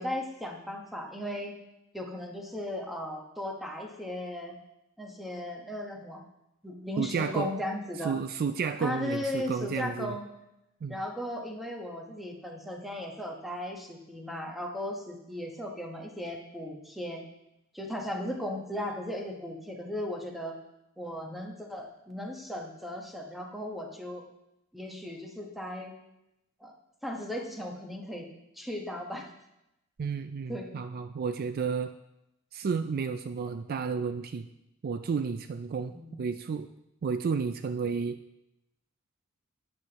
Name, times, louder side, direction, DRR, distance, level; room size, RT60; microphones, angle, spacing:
voice 1, 0.0-1.6 1.9-4.6 5.0-6.2 6.6-8.1 8.8-10.3 10.9-17.2 17.7-20.6 21.0-24.2 24.7-25.9 26.6-26.7 27.0-28.3 28.5-29.3 30.5-30.7 35.9-36.3, left 1 dB, ahead, 0 dB, 1.2 m, -36 dB
voice 2, 7.0-7.5 8.0-10.2 10.8-11.0 30.0-31.9 32.5-34.5 34.8-35.9 36.2-36.7 37.0-38.2, right 5 dB, 45° right, 9 dB, 0.3 m, -31 dB
11.5 x 9.5 x 3.0 m, 0.88 s
head